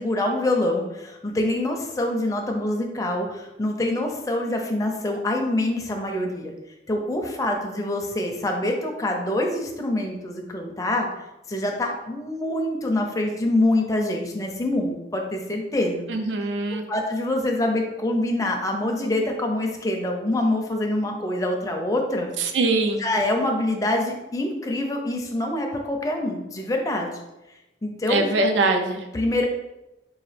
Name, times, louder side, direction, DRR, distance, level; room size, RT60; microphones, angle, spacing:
voice 1, 0.0-6.5 6.9-11.1 11.5-16.1 16.9-22.3 23.0-27.2 27.8-28.3 29.1-29.5, left 1 dB, 20° left, 2 dB, 0.4 m, -25 dB
voice 2, 16.1-16.8 22.6-23.0 28.1-29.0, right 2 dB, 85° right, 5 dB, 0.4 m, -22 dB
3.9 x 2.5 x 3.2 m, 0.96 s
head